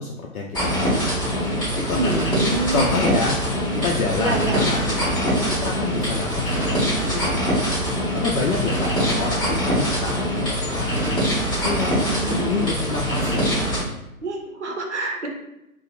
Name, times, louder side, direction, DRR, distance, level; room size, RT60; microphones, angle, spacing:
voice 1, 0.0-2.3 2.7-3.4 3.8-7.8 8.1-11.2 11.6-11.9 12.3-13.5, left 4 dB, 75° left, -1 dB, 0.5 m, -28 dB
sound 1, 0.5-13.8, equal, 10° left, 0.9 m, -23 dB
voice 2, 1.7-3.0 4.2-4.6 12.0-12.5 14.2-15.3, right 2 dB, 55° right, 2 dB, 0.6 m, -27 dB
2.8 x 2.0 x 2.5 m, 0.90 s
figure-of-eight pair, 140°, 43 cm